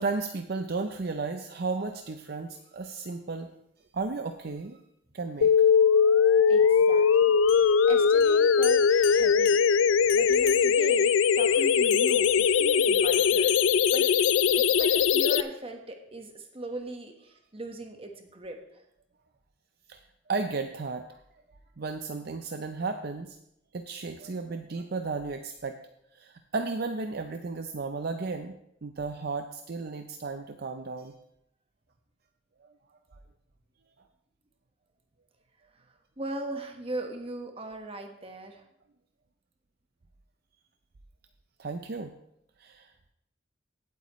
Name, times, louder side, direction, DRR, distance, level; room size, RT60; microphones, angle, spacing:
voice 1, 0.0-3.5 3.9-4.8 5.1-5.5 10.0-10.1 19.9-21.1 21.8-23.4 23.7-25.8 26.1-28.5 28.8-31.1 32.6-32.7 41.6-42.1 42.6-42.9, right 4 dB, 55° right, 6 dB, 0.6 m, -34 dB
sound 1, 5.4-15.4, left 6 dB, 85° left, 0.4 m, -21 dB
voice 2, 6.5-9.6 10.1-14.1 14.5-18.9 35.7-38.7, right 2 dB, 30° right, 4 dB, 1.3 m, -39 dB
sound 2, 7.4-11.1 11.9-15.1, left 11 dB, 60° left, 1.1 m, -39 dB
17.0 x 8.2 x 3.1 m, 0.77 s
head